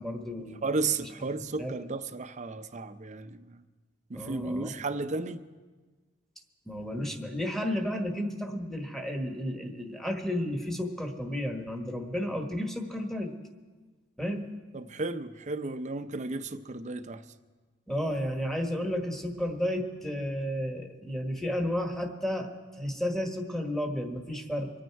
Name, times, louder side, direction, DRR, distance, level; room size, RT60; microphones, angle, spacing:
voice 1, 0.0-0.7 1.6-1.8 4.1-4.8 6.7-13.3 14.2-14.5 17.9-24.7, equal, ahead, 2 dB, 1.3 m, -32 dB
voice 2, 0.6-3.6 4.1-5.4 14.7-17.2, right 3 dB, 35° right, 10 dB, 0.6 m, -33 dB
25.0 x 9.1 x 4.7 m, 1.3 s
head